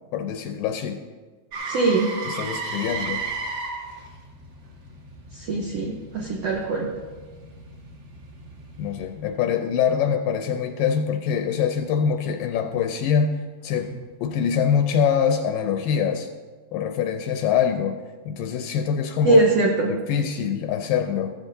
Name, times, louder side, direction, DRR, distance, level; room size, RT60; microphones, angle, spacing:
voice 1, 0.1-1.0 2.3-3.2 8.8-13.9 14.2-16.3 16.7-18.0 18.3-19.4 19.9-21.3, left 7 dB, 80° left, 6 dB, 2.1 m, -24 dB
Motor vehicle (road), 1.5-9.4 13.8-13.9, right 4 dB, 50° right, 2.4 m, -35 dB
voice 2, 1.7-2.1 5.3-6.9 19.2-19.9, right 3 dB, 85° right, -1 dB, 1.4 m, -21 dB
14.5 x 13.5 x 2.7 m, 1.4 s
omnidirectional pair, 4.3 m